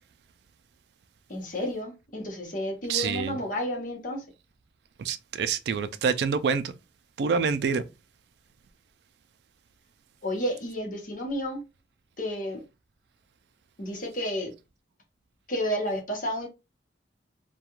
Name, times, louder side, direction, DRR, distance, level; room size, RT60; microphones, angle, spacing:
voice 1, 1.3-4.2 10.2-11.6 12.2-12.6 13.8-14.5 15.5-16.5, equal, 45° left, 0.9 m, -31 dB
voice 2, 2.9-3.4 5.0-6.7 7.2-7.8, right 5 dB, 65° right, 0.3 m, -26 dB
2.3 x 2.2 x 2.9 m
head